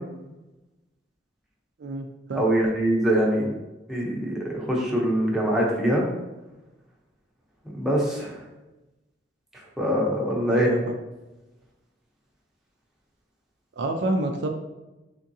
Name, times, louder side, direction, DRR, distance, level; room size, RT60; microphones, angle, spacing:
voice 1, 1.8-2.4 10.5-10.8 13.8-14.5, right 2 dB, 65° right, 4 dB, 0.4 m, -27 dB
voice 2, 2.4-3.5 3.9-6.0 7.7-8.4 9.8-10.7, equal, 5° right, -4 dB, 0.7 m, -23 dB
3.6 x 3.6 x 2.7 m, 1.0 s
head